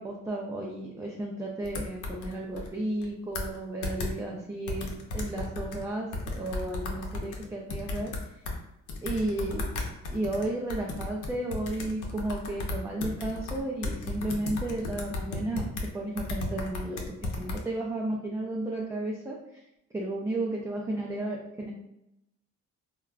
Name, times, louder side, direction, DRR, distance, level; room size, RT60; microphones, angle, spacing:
voice 1, 0.0-8.4 9.0-9.6 10.1-15.7 15.9-19.6 19.9-21.7, right 1 dB, 10° right, -2 dB, 0.4 m, -33 dB
sound 1, 1.6-2.7 3.0-3.1 3.3-3.6 3.8-4.1 4.7-5.8 6.1-8.6 8.9-15.9 16.2-17.6, left 2 dB, 85° left, 0.7 m, -34 dB
3.5 x 2.2 x 2.3 m, 0.85 s
cardioid pair, 90°, 30 cm